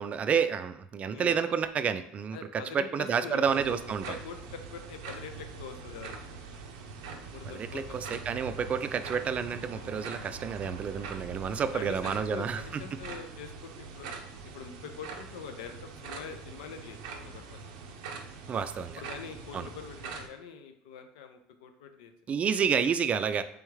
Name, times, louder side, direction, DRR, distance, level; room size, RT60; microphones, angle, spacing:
voice 1, 0.0-4.2 7.5-12.8 18.5-19.0 19.5-19.7 22.3-23.4, right 7 dB, 35° right, 11 dB, 0.3 m, -30 dB
voice 2, 2.3-3.8 4.1-6.4 7.3-8.1 11.7-14.1 14.5-17.6 19.0-22.1, left 6 dB, 85° left, 7 dB, 0.5 m, -44 dB
sound 1, 3.4-20.3, right 4 dB, 90° right, 0.5 m, -43 dB
3.5 x 3.4 x 3.1 m, 0.76 s
supercardioid pair, 95°, 4 cm